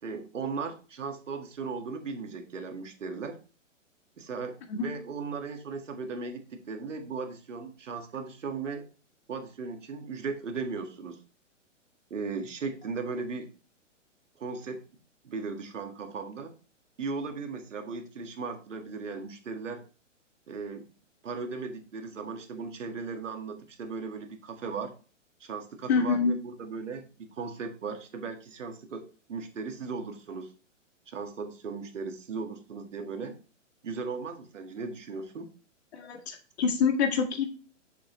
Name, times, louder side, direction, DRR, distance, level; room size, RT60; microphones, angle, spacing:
voice 1, 0.0-3.4 4.2-8.9 9.3-11.2 12.1-13.5 14.4-14.8 15.2-16.5 17.0-19.8 20.5-20.9 21.2-24.9 25.4-30.5 31.1-33.4 33.8-35.5, right 4 dB, 70° right, 5 dB, 1.8 m, -37 dB
voice 2, 25.9-26.3 35.9-37.5, left 5 dB, 55° left, 5 dB, 2.1 m, -26 dB
7.1 x 6.5 x 3.0 m, 0.35 s
hypercardioid pair, 125°, 38 cm